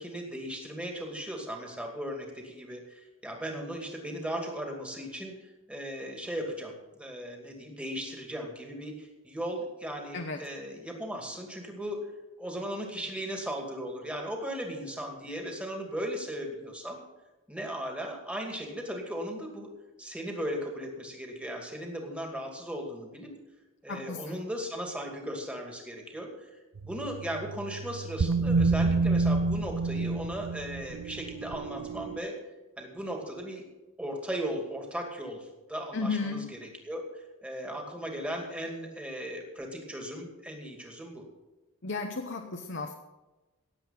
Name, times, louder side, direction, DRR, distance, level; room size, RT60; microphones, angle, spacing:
voice 1, 0.0-5.3 5.7-12.0 12.4-17.0 17.5-19.7 20.0-23.3 23.8-26.5 26.8-32.4 32.8-33.6 34.0-41.2, equal, 5° right, 1 dB, 2.4 m, -37 dB
voice 2, 23.9-24.4 35.9-36.5 41.8-42.9, left 3 dB, 55° left, 4 dB, 1.0 m, -34 dB
sound 1, 26.8-32.2, right 3 dB, 75° right, 0.5 m, -29 dB
18.0 x 8.0 x 5.7 m, 1.1 s
head